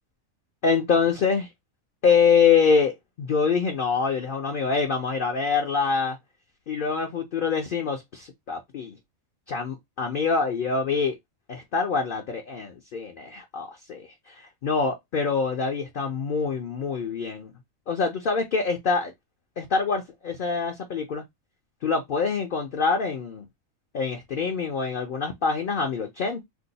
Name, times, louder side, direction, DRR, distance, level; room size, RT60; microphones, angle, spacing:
voice 1, 0.6-1.5 2.0-6.2 6.7-9.0 9.5-11.2 11.5-17.5 17.9-19.1 19.6-21.2 21.8-23.5 23.9-26.4, left 5 dB, 55° left, 0.6 m, -25 dB
2.7 x 2.2 x 3.9 m
omnidirectional pair, 1.4 m